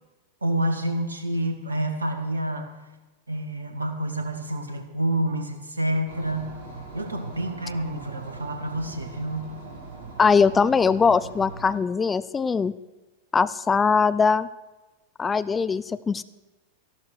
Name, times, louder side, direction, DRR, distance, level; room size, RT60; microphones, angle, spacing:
voice 1, 0.4-2.7 3.3-6.5 6.9-9.5, right 1 dB, 80° right, 6 dB, 2.0 m, -28 dB
sound 1, 6.1-11.8, right 4 dB, 50° right, 3.9 m, -41 dB
voice 2, 10.2-12.7 13.3-14.5 15.2-16.2, left 5 dB, 15° left, 15 dB, 0.5 m, -21 dB
14.0 x 11.5 x 6.3 m, 1.1 s
figure-of-eight pair, 90°, 0 cm